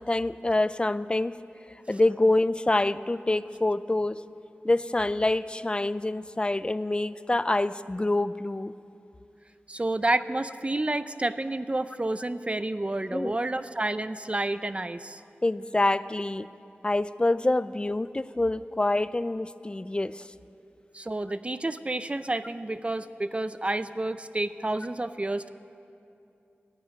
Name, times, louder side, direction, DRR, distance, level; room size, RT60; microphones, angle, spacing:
voice 1, 0.0-1.4 1.9-4.2 4.6-8.7 13.1-13.4 15.4-16.5 16.8-20.3, left 2 dB, 25° left, 15 dB, 0.4 m, -26 dB
voice 2, 9.7-15.2 20.9-25.5, right 2 dB, 30° right, 12 dB, 0.5 m, -30 dB
15.5 x 9.2 x 9.8 m, 2.7 s
wide cardioid pair, 75°, 4 cm